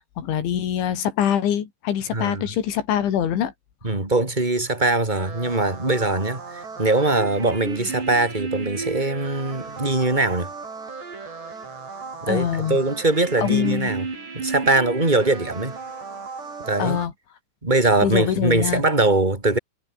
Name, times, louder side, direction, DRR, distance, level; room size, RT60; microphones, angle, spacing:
voice 1, 0.2-3.5 12.3-12.8 13.4-13.9 16.8-17.1 18.0-18.8, left 9 dB, 70° left, 5.3 m, -24 dB
voice 2, 2.1-2.4 3.8-10.5 12.2-14.0 14.3-15.8 16.6-17.0 17.6-19.6, right 2 dB, 10° right, 3.3 m, -22 dB
sound 1, 5.1-17.1, right 4 dB, 60° right, 9.9 m, -34 dB
omnidirectional pair, 5.5 m